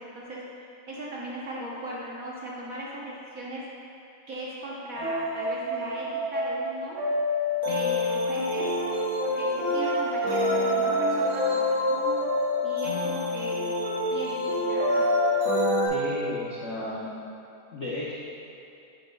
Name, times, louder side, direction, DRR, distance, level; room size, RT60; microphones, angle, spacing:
voice 1, 0.9-3.6 4.3-7.0 7.7-11.6 11.9-12.2 12.6-13.7 14.1-15.1, right 1 dB, 55° right, -5 dB, 1.1 m, -37 dB
sound 1, 4.9-15.9, left 1 dB, 80° right, 2.3 m, -26 dB
voice 2, 15.8-17.1 17.7-18.1, left 1 dB, 75° left, -6 dB, 0.6 m, -33 dB
8.3 x 7.6 x 2.3 m, 2.7 s
omnidirectional pair, 2.3 m